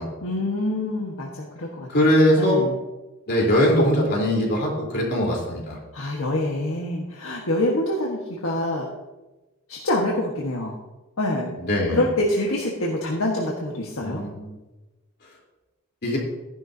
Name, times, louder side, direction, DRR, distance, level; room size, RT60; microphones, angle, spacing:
voice 1, 0.2-2.8 5.9-8.9 9.7-10.8 11.2-11.6 11.9-14.3, left 1 dB, 85° left, -2 dB, 1.5 m, -26 dB
voice 2, 1.9-2.6 3.3-5.8 11.7-12.0 14.0-14.3 16.0-16.2, equal, 55° left, -3 dB, 3.9 m, -20 dB
14.5 x 11.0 x 2.8 m, 1.1 s
head